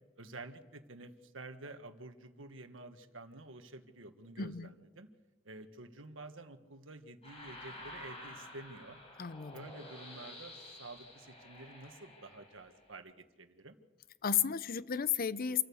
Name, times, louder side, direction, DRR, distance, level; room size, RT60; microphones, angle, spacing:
voice 1, 0.2-5.1 5.4-9.0 9.5-13.8, right 2 dB, 75° right, 1.6 m, -50 dB
voice 2, 4.4-4.7 9.2-9.6 14.2-15.6, left 8 dB, 50° left, 0.6 m, -33 dB
sound 1, 7.2-12.9, left 1 dB, 30° left, 6.7 m, -51 dB
27.0 x 14.0 x 7.1 m
head